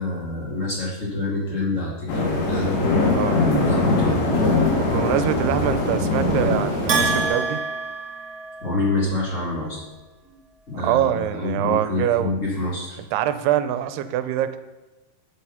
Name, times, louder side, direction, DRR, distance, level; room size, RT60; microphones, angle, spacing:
voice 1, 0.0-2.9 3.6-4.2 8.6-9.8 10.2-10.4 10.7-13.0, left 2 dB, 25° left, -4 dB, 1.6 m, -27 dB
sound 1, 2.1-7.3, left 2 dB, 70° left, 3.9 m, -21 dB
voice 2, 3.1-3.4 4.8-7.6 10.7-12.4 13.1-14.6, right 11 dB, 85° right, 11 dB, 2.6 m, -24 dB
Bell, 6.9-9.0, right 4 dB, 60° right, 1.0 m, -26 dB
8.7 x 8.2 x 5.7 m, 1.1 s
omnidirectional pair, 4.7 m